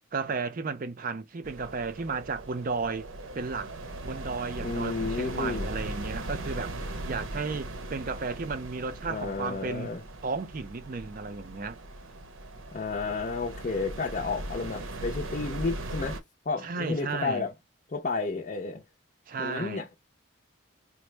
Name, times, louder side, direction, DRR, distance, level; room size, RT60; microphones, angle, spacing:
voice 1, 0.1-3.1 3.3-3.7 4.0-6.7 7.1-9.9 10.2-11.8 16.6-17.5 19.3-19.9, right 4 dB, 45° right, 0.5 m, -33 dB
sound 1, 1.4-16.2, right 1 dB, 85° right, 0.7 m, -39 dB
voice 2, 4.6-5.7 9.0-10.0 12.7-16.2 16.5-17.5 17.9-18.8 19.4-19.9, left 4 dB, 40° left, 0.5 m, -31 dB
4.2 x 2.1 x 3.2 m
head